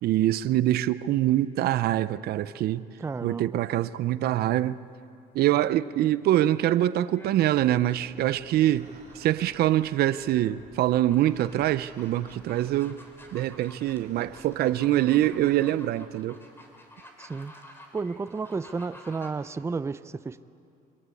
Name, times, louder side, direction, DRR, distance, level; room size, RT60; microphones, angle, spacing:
voice 1, 0.0-2.8 3.2-4.8 5.3-8.9 9.1-13.0 13.3-16.4, right 13 dB, 65° right, 0.6 m, -24 dB
voice 2, 3.0-3.6 17.2-17.5 17.9-20.4, right 4 dB, 15° right, 0.5 m, -32 dB
sound 1, 3.6-3.9 5.4-5.9 6.8-7.3 7.6-10.5 10.8-19.3, equal, 15° left, 3.4 m, -51 dB
sound 2, 7.5-15.6, right 4 dB, 45° right, 4.0 m, -55 dB
25.0 x 18.0 x 8.4 m
cardioid pair, 110°, 17 cm